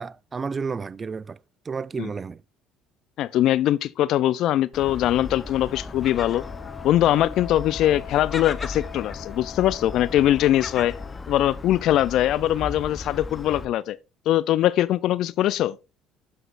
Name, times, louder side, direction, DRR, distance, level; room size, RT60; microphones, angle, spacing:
voice 1, 0.0-1.4 1.7-2.4, right 5 dB, 35° right, 0.3 m, -31 dB
voice 2, 3.2-6.4 6.8-10.9 11.3-14.0 14.3-15.8, left 13 dB, 65° left, 0.3 m, -22 dB
Gull seagull, 4.7-13.7, left 3 dB, 25° left, 0.7 m, -36 dB
Wind instrument woodwind instrument, 5.9-11.2, left 13 dB, 90° left, 2.3 m, -43 dB
11.0 x 5.0 x 2.4 m
hypercardioid pair, 70°, 0 cm